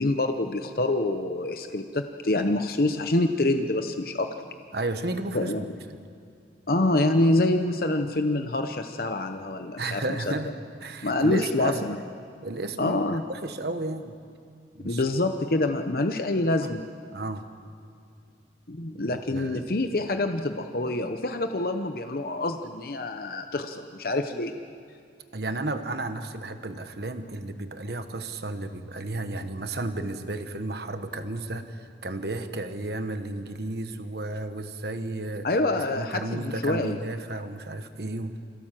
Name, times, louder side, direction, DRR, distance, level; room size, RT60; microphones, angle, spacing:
voice 1, 0.0-4.3 5.3-5.6 6.7-10.0 11.0-12.0 12.8-13.2 14.8-16.9 18.7-24.5 35.4-37.0, left 2 dB, 55° left, 6 dB, 0.8 m, -26 dB
voice 2, 4.7-6.1 9.8-10.5 10.8-11.8 12.4-13.0 13.3-14.2 14.7-15.0 17.1-17.4 18.9-19.7 25.3-35.5 36.0-38.3, right 2 dB, 60° right, 8 dB, 1.3 m, -33 dB
26.5 x 16.5 x 7.6 m, 2.4 s
head